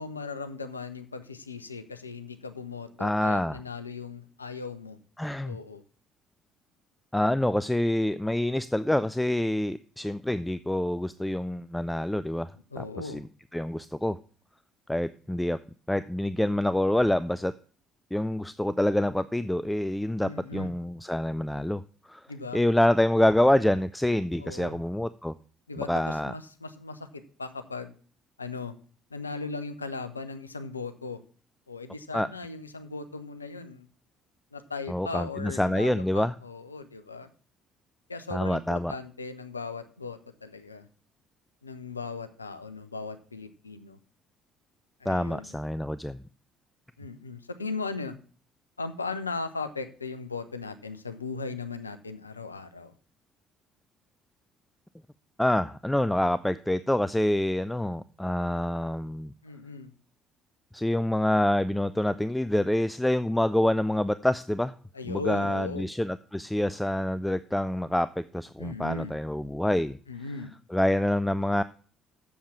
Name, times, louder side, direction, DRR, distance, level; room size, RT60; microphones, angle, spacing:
voice 1, 0.0-5.0 5.4-5.8 12.7-13.2 20.2-20.7 22.3-22.6 24.4-24.8 25.7-27.9 28.4-28.7 29.1-31.2 31.7-33.9 34.5-37.3 38.1-40.9 41.6-44.0 45.0-45.5 47.0-48.2 48.8-52.9 59.4-59.9 64.9-65.9 68.6-69.1 70.1-70.5, left 4 dB, 85° left, 9 dB, 0.6 m, -38 dB
voice 2, 3.0-3.6 5.2-5.6 7.1-12.5 12.8-13.2 13.5-14.2 14.9-15.6 15.9-17.5 18.1-21.8 22.1-22.2 22.5-25.3 25.8-26.3 32.1-32.3 34.9-36.3 38.3-38.9 45.1-46.2 55.4-59.3 60.7-64.7 65.1-70.0 70.7-71.6, left 1 dB, 5° left, 14 dB, 0.4 m, -26 dB
7.2 x 7.1 x 5.9 m, 0.42 s
figure-of-eight pair, 50°, 0 cm